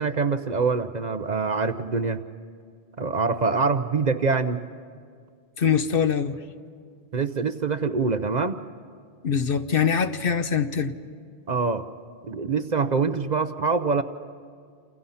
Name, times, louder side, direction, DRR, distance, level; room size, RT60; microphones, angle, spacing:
voice 1, 0.0-2.2 3.0-4.6 7.1-8.6 11.5-11.9 12.3-14.0, right 4 dB, 45° right, 10 dB, 0.8 m, -24 dB
voice 2, 5.6-6.4 9.2-10.9, left 7 dB, 60° left, 10 dB, 1.0 m, -23 dB
28.5 x 28.0 x 5.7 m, 2.1 s
omnidirectional pair, 1.1 m